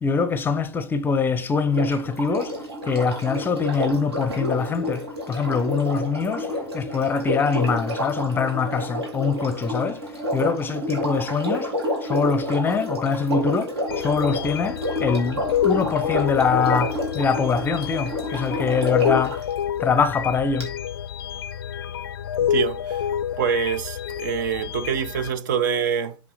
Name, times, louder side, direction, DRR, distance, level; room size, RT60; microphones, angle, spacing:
voice 1, 0.0-2.6 2.8-6.5 6.7-10.0 10.3-11.7 12.0-19.4 19.8-20.7, left 5 dB, 15° left, 0.6 m, -24 dB
Sink (filling or washing), 1.6-19.4 20.6-20.7, left 1 dB, 70° right, 2.6 m, -29 dB
sound 1, 13.9-25.3, left 9 dB, 60° left, 0.5 m, -28 dB
voice 2, 22.4-23.1 23.4-26.2, right 7 dB, 50° right, 0.6 m, -25 dB
7.6 x 3.5 x 5.1 m
figure-of-eight pair, 100°, 14 cm